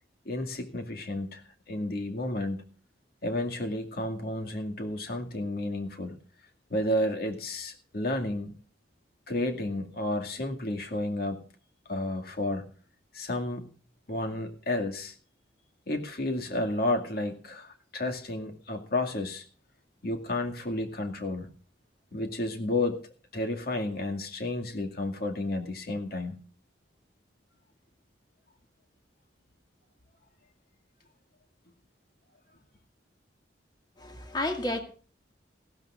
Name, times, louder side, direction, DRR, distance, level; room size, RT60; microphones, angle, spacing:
voice 1, 0.3-2.7 3.2-6.2 6.7-8.6 9.3-11.4 11.9-12.6 13.1-13.7 14.1-15.1 15.9-19.5 20.0-21.5 22.1-23.0 23.3-26.4, left 1 dB, 55° left, 2.2 m, -31 dB
voice 2, 34.0-34.8, left 1 dB, 25° left, 2.1 m, -31 dB
19.5 x 15.5 x 2.5 m
head